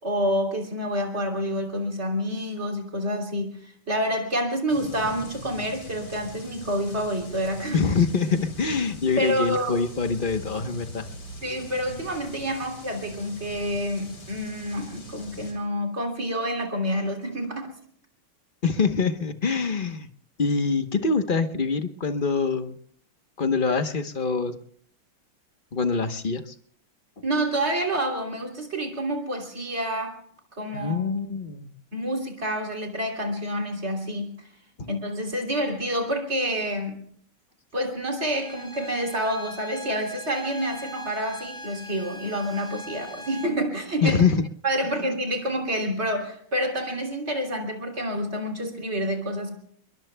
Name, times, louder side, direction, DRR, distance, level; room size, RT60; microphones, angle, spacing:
voice 1, 0.0-7.8 9.2-9.8 11.4-17.7 27.2-30.2 30.6-31.0 31.9-34.3 34.9-37.0 37.7-44.2 44.6-49.5, equal, 30° right, 2 dB, 3.4 m, -28 dB
sound 1, 4.7-15.5, left 1 dB, 80° left, 5.1 m, -42 dB
voice 2, 7.7-11.1 18.6-20.1 20.4-22.8 23.4-24.6 25.7-26.5 30.7-31.7 34.8-34.9 44.0-44.4, left 5 dB, 40° left, 8 dB, 0.7 m, -24 dB
Bowed string instrument, 38.3-43.6, equal, ahead, 3.6 m, -41 dB
29.5 x 22.0 x 2.2 m, 0.62 s
omnidirectional pair, 2.4 m